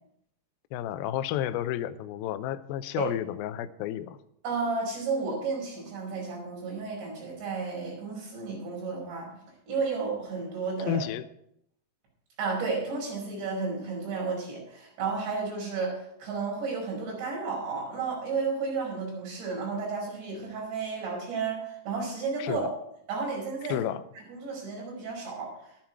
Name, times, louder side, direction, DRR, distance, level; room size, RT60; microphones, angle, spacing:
voice 1, 0.7-4.2 10.9-11.2 22.4-22.7 23.7-24.0, left 11 dB, 80° left, 11 dB, 2.2 m, -31 dB
voice 2, 4.4-9.3 9.7-11.0 12.4-22.7 23.1-23.8 24.3-25.8, right 4 dB, 85° right, -3 dB, 7.5 m, -32 dB
12.5 x 12.0 x 4.7 m, 0.73 s
omnidirectional pair, 4.9 m